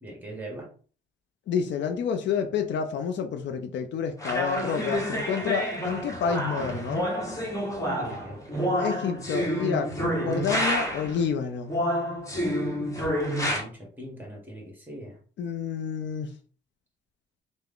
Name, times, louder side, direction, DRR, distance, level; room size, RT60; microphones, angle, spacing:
voice 1, 0.0-0.7 7.8-8.7 13.2-15.2, right 1 dB, 10° right, 1.6 m, -41 dB
voice 2, 1.5-7.0 8.8-9.9 10.2-11.7 15.4-16.3, left 7 dB, 65° left, 0.5 m, -29 dB
sound 1, 4.2-11.2 11.7-13.6, equal, 15° left, 1.2 m, -29 dB
3.4 x 2.1 x 3.6 m
cardioid pair, 90°, 20 cm